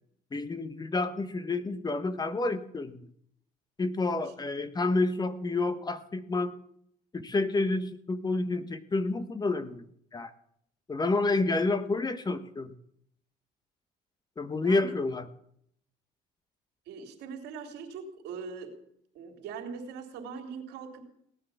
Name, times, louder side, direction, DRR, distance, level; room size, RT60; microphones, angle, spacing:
voice 1, 0.3-3.0 3.8-6.5 7.1-9.8 10.1-10.3 10.9-12.7 14.4-15.3, left 3 dB, 25° left, 11 dB, 1.2 m, -29 dB
voice 2, 14.6-14.9 16.9-18.7 19.1-21.1, right 5 dB, 90° right, 3 dB, 3.4 m, -41 dB
18.5 x 9.8 x 7.1 m, 0.69 s
cardioid pair, 110°, 17 cm